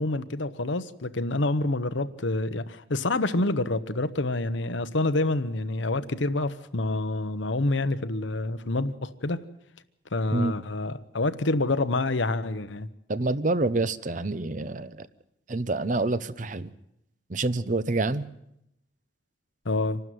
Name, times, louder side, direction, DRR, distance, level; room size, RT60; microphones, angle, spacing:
voice 1, 0.0-9.4 10.1-12.9 19.6-20.0, left 2 dB, 70° left, 12 dB, 1.0 m, -27 dB
voice 2, 13.1-15.1 15.5-16.7 17.3-18.3, right 2 dB, 40° right, 15 dB, 0.7 m, -27 dB
26.0 x 12.5 x 9.5 m, 0.82 s
head